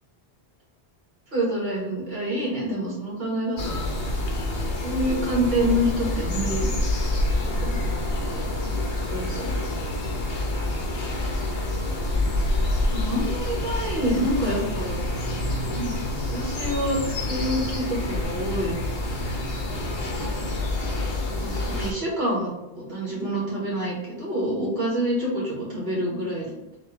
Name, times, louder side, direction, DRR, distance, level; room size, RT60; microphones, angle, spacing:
voice 1, 1.3-3.8 4.8-6.7 7.6-8.0 8.3-8.7 9.1-9.5 12.9-15.0 15.7-15.9 16.3-18.7 19.6-20.1 21.4-22.5 22.7-26.8, equal, 65° right, -5 dB, 1.9 m, -27 dB
sound 1, 3.6-21.9, left 2 dB, 65° left, 1.0 m, -27 dB
4.2 x 3.3 x 3.4 m, 0.93 s
omnidirectional pair, 1.1 m